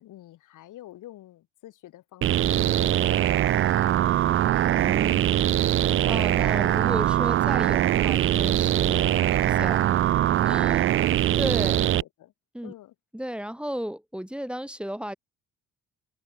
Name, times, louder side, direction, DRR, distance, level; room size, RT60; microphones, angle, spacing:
voice 1, 0.0-4.3 10.8-11.2 11.7-11.8 12.0-12.3 12.6-12.9, left 14 dB, 75° left, 4.6 m, -48 dB
sound 1, 2.2-12.0, right 12 dB, 40° right, 0.4 m, -22 dB
voice 2, 4.8-9.8 10.4-10.9 11.4-11.8 12.5-12.7 13.1-15.1, equal, 5° right, 4.8 m, -34 dB
supercardioid pair, 75°, 31 cm